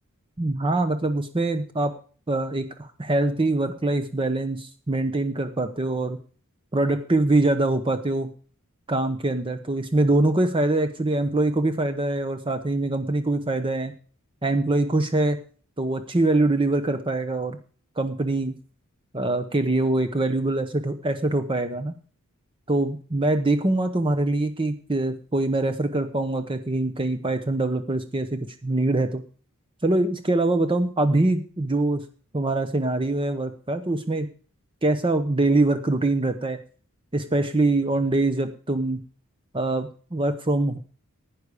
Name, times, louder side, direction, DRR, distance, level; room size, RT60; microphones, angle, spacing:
voice 1, 0.4-1.9 2.3-6.2 6.7-8.3 8.9-13.9 14.4-15.4 15.8-17.6 18.0-18.5 19.1-21.9 22.7-29.2 29.8-32.0 32.3-34.3 34.8-36.6 37.1-39.0 39.5-40.8, right 2 dB, 25° right, 8 dB, 0.9 m, -24 dB
12.0 x 9.7 x 5.0 m, 0.41 s
head